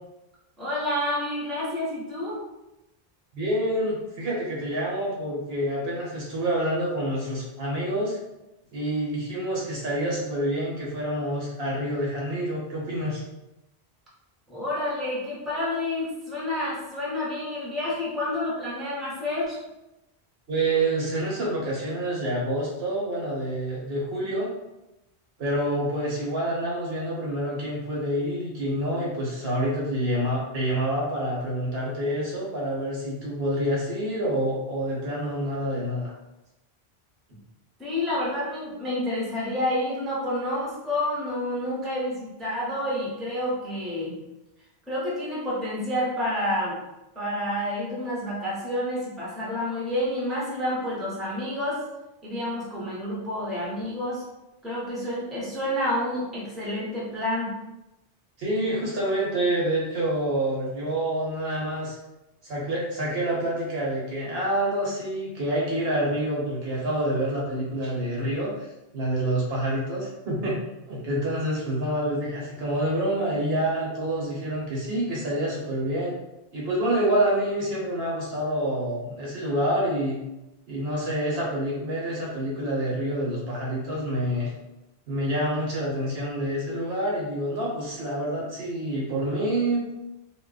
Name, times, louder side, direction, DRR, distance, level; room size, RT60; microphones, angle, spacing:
voice 1, 0.6-2.4 14.5-19.6 37.8-44.2 44.9-46.8 47.1-51.8 52.2-54.2 54.6-57.5, left 1 dB, ahead, -7 dB, 0.7 m, -29 dB
voice 2, 3.3-8.2 8.7-13.2 20.5-24.5 25.4-36.1 58.4-62.0 62.4-68.5 68.9-70.6 70.9-76.1 76.5-80.2 80.7-84.5 85.1-89.9, right 1 dB, 70° right, -5 dB, 1.1 m, -27 dB
2.3 x 2.0 x 3.8 m, 0.94 s
omnidirectional pair, 1.1 m